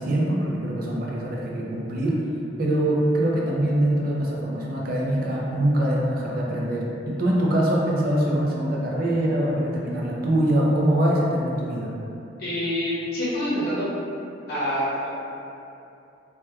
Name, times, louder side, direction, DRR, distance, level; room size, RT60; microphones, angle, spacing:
voice 1, 0.0-2.2 2.6-11.9, right 1 dB, 50° right, -3 dB, 0.4 m, -23 dB
voice 2, 12.4-13.9 14.5-15.1, equal, 55° left, -10 dB, 0.7 m, -26 dB
2.3 x 2.2 x 2.8 m, 2.7 s
head